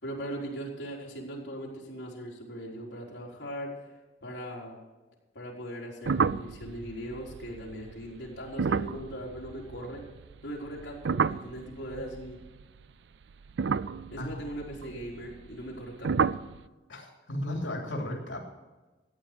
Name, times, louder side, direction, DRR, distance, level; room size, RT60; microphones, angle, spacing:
voice 1, 0.0-3.9 4.2-4.8 5.3-10.0 10.4-12.4 14.1-16.3, equal, 70° left, -4 dB, 4.0 m, -39 dB
sound 1, 6.0-10.4 10.7-12.8 13.4-15.8 16.0-16.6, right 5 dB, 70° right, 0.4 m, -31 dB
voice 2, 16.9-18.4, left 1 dB, 85° left, 0 dB, 2.9 m, -35 dB
14.5 x 9.5 x 6.8 m, 1.2 s
head